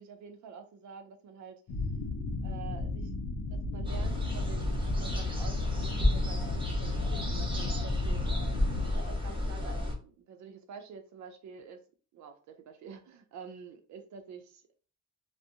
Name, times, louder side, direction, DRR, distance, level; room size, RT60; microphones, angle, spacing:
voice 1, 0.0-1.6 2.4-3.1 3.5-8.2 8.5-8.6 8.8-11.8 12.1-14.6, right 6 dB, 70° right, 0.6 m, -48 dB
sound 1, 1.7-8.9, left 2 dB, 70° left, 0.6 m, -35 dB
sound 2, 3.8-9.9, left 1 dB, 15° right, 0.9 m, -31 dB
2.6 x 2.1 x 2.5 m
cardioid pair, 90°, 30 cm